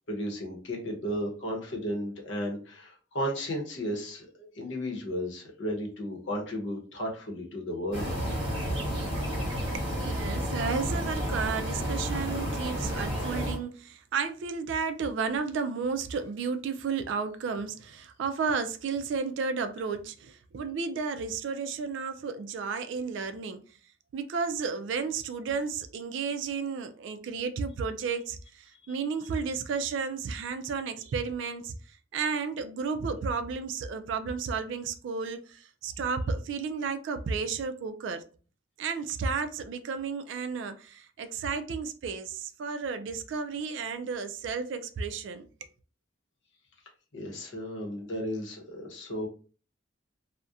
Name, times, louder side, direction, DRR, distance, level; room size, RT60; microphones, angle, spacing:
voice 1, 0.1-8.1 28.9-29.0 47.1-49.3, equal, 70° left, 0.8 m, -34 dB
sound 1, 7.9-13.6, equal, 30° right, 1.0 m, -31 dB
voice 2, 9.7-23.6 24.1-38.2 38.8-45.5, right 5 dB, 75° right, 0.3 m, -33 dB
2.3 x 2.1 x 2.6 m
head